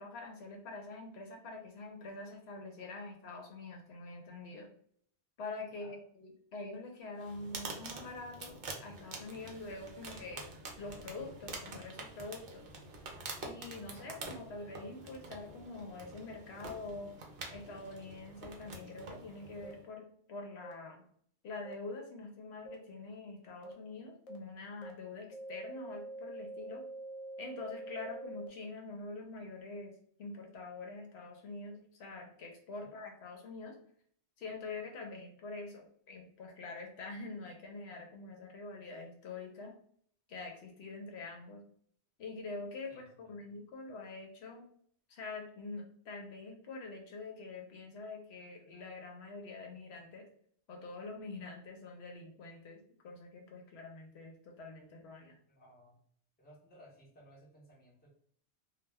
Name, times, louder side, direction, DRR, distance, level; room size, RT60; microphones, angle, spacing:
voice 1, 0.0-4.7 5.4-10.4 10.8-12.6 13.4-17.1 17.5-21.0 21.4-26.8 27.4-33.8 34.4-39.7 40.3-41.6 42.2-44.6 45.1-50.2 50.7-55.4, left 3 dB, 75° left, 2 dB, 0.8 m, -45 dB
sound 1, 7.2-19.8, right 3 dB, 60° right, 0.7 m, -47 dB
sound 2, 19.6-19.7 20.6-20.7 21.6-21.7 22.7-22.8 23.6-23.7 24.3-24.4 24.8-24.9 25.3-28.5, right 2 dB, 55° left, 0.4 m, -45 dB
voice 2, 42.9-43.4 55.5-56.0 56.4-58.1, equal, 10° left, -4 dB, 0.6 m, -60 dB
2.2 x 2.1 x 3.3 m, 0.62 s
omnidirectional pair, 1.1 m